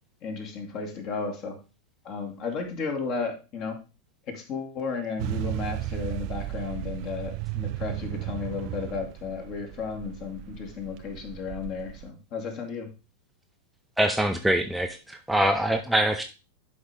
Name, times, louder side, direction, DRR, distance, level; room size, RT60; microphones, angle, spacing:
voice 1, 0.2-1.6 2.0-3.8 4.3-12.9, left 5 dB, 40° left, 4 dB, 2.2 m, -34 dB
sound 1, 5.2-12.1, right 15 dB, 45° right, 0.4 m, -35 dB
voice 2, 14.0-16.2, right 1 dB, 5° right, 5 dB, 0.6 m, -24 dB
11.5 x 5.3 x 3.5 m, 0.31 s
figure-of-eight pair, 90°, 0 cm